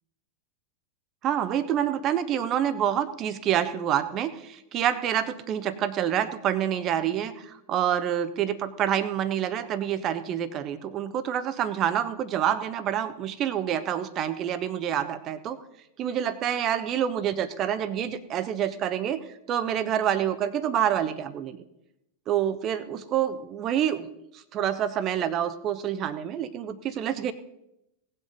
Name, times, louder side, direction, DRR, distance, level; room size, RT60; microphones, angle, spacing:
voice 1, 1.2-15.6 16.0-19.2 19.5-21.6 22.3-24.1 24.5-27.3, right 10 dB, 35° right, 12 dB, 0.9 m, -27 dB
18.0 x 7.9 x 4.0 m, 0.84 s
figure-of-eight pair, 90°, 0 cm